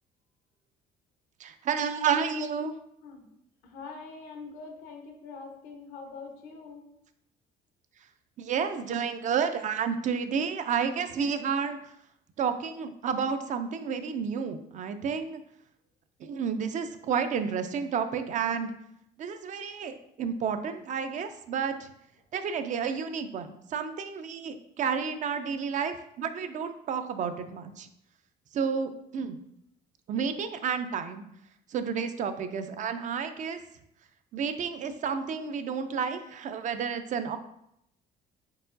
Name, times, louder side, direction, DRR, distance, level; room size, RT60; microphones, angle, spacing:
voice 1, 1.4-2.7 8.4-11.8 12.4-15.4 16.2-18.7 19.2-21.9 22.3-27.9 28.5-29.4 30.1-31.2 31.7-33.6 34.3-37.4, right 6 dB, 45° right, 9 dB, 0.4 m, -31 dB
voice 2, 3.6-6.8, left 4 dB, 90° left, 3 dB, 0.9 m, -44 dB
4.6 x 3.7 x 2.6 m, 0.76 s
cardioid pair, 110°, 17 cm